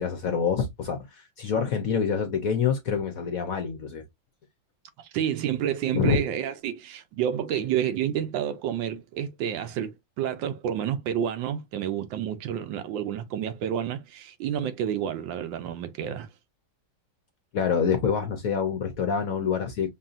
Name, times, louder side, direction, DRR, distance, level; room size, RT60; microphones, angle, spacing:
voice 1, 0.0-4.0 5.9-6.2 17.5-19.9, left 6 dB, 65° left, 0.9 m, -26 dB
voice 2, 5.0-16.3, right 9 dB, 80° right, 1.3 m, -29 dB
5.4 x 2.7 x 2.4 m
omnidirectional pair, 2.1 m